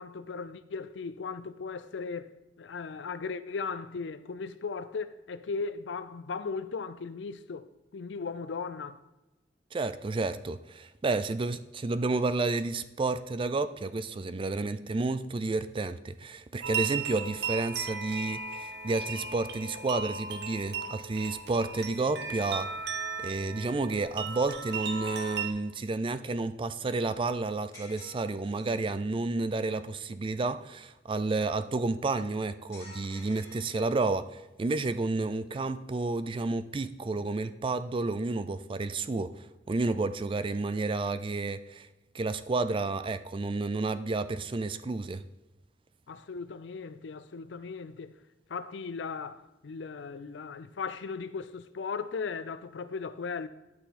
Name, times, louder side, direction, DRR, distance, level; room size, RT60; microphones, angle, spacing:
voice 1, 0.0-2.3 2.6-7.7 7.9-9.0 46.1-48.2 48.5-53.5, left 5 dB, 80° left, 0.5 m, -37 dB
voice 2, 9.7-22.7 23.2-34.3 34.6-41.9 42.1-45.2, right 3 dB, 30° right, 0.4 m, -31 dB
sound 1, 16.6-25.5, right 5 dB, 65° right, 0.7 m, -36 dB
sound 2, 27.7-28.9 32.7-34.3, left 1 dB, 20° left, 3.1 m, -51 dB
10.5 x 5.8 x 4.2 m
head